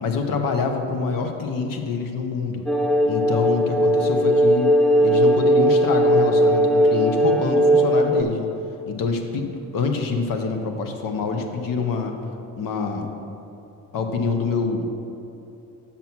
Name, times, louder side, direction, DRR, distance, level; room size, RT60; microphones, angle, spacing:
voice 1, 0.0-2.6 3.1-4.7 5.0-8.5 8.9-12.2 12.6-13.0 13.9-14.9, left 4 dB, 75° left, 5 dB, 1.0 m, -26 dB
sound 1, 2.7-8.2, equal, 5° left, 0.3 m, -18 dB
6.9 x 5.9 x 6.1 m, 2.9 s
cardioid pair, 100°, 34 cm